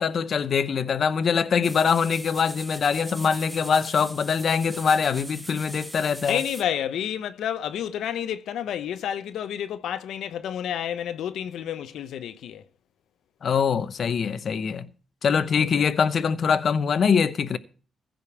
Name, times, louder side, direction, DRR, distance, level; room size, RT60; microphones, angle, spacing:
voice 1, 0.0-6.4 13.4-14.9 15.2-17.6, left 6 dB, 55° left, 0.8 m, -23 dB
sound 1, 1.6-6.6, right 1 dB, 10° right, 1.5 m, -40 dB
voice 2, 6.2-12.6 15.5-15.9, left 10 dB, 85° left, 0.8 m, -30 dB
15.5 x 5.2 x 7.0 m
cardioid pair, 100°, 0 cm